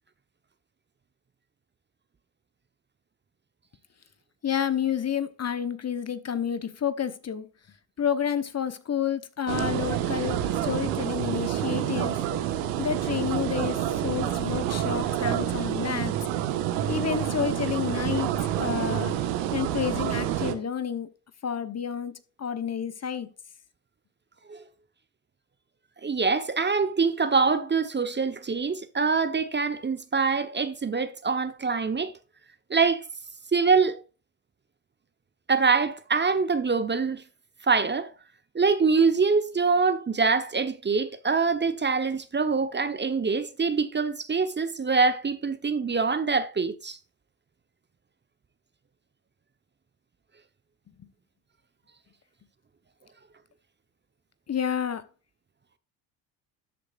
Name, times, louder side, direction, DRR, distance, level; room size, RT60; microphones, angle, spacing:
voice 1, 4.4-7.5 8.0-12.2 12.8-16.2 16.9-18.3 18.6-19.1 19.5-21.1 21.4-23.3 54.5-55.0, left 8 dB, 30° left, 1.1 m, -30 dB
sound 1, 9.5-20.5, right 11 dB, 75° right, 1.5 m, -28 dB
voice 2, 26.0-32.1 32.7-33.0 33.5-34.0 35.5-37.2 37.6-38.1 38.5-47.0, right 4 dB, 20° right, 1.1 m, -24 dB
13.0 x 8.2 x 2.5 m
hypercardioid pair, 70°, 50 cm